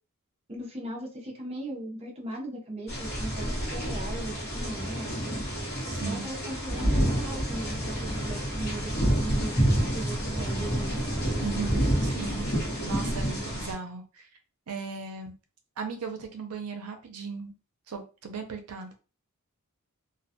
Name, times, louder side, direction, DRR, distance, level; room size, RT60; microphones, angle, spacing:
voice 1, 0.5-5.2 6.0-11.0, right 1 dB, 25° right, 0 dB, 0.5 m, -38 dB
sound 1, 2.9-13.7, equal, 45° left, 1.0 m, -28 dB
voice 2, 5.9-6.2 11.4-12.5 12.8-14.3 14.7-15.3 15.8-17.5 17.9-18.9, right 5 dB, 80° right, 5 dB, 0.5 m, -37 dB
2.3 x 2.2 x 2.7 m, 0.34 s
head